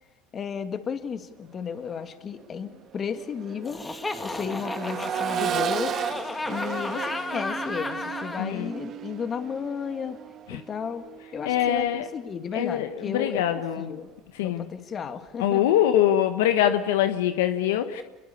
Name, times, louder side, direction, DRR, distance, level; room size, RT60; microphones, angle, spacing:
voice 1, 0.3-3.8 4.2-6.0 6.5-10.2 10.5-11.1 11.3-14.1 14.4-15.6, left 6 dB, 40° left, 9 dB, 2.2 m, -33 dB
Accelerating revving vroom, 1.7-1.9 2.3-12.2 13.9-14.0, right 9 dB, 45° right, 1.5 m, -35 dB
Laughter, 3.7-8.5, left 2 dB, 15° left, 2.2 m, -33 dB
voice 2, 8.4-8.7 10.5-10.6 11.4-12.0 12.5-14.0 14.3-14.6 15.4-18.0, left 11 dB, 80° left, 9 dB, 1.3 m, -23 dB
27.0 x 21.5 x 7.0 m, 1.1 s
hypercardioid pair, 80°, 0 cm